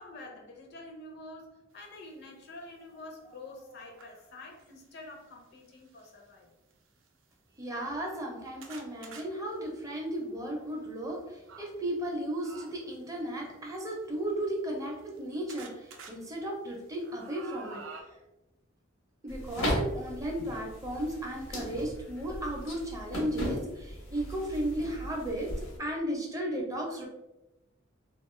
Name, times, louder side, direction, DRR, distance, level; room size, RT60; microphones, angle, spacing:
voice 1, 0.0-6.6, left 2 dB, 55° left, 1 dB, 0.5 m, -47 dB
sound 1, 2.1-2.2 2.7-4.7 5.7-6.1 6.7-6.8 7.1-7.2 7.8-11.7 12.4-13.0 14.0-15.2 15.5-16.1 16.5-18.0, right 4 dB, 80° right, 0.4 m, -51 dB
voice 2, 7.6-17.8 19.2-25.5 25.8-27.1, right 1 dB, 15° right, -1 dB, 0.5 m, -35 dB
Folding Clothes, 19.3-25.8, equal, 90° left, 0.9 m, -37 dB
2.4 x 2.3 x 3.0 m, 0.96 s
head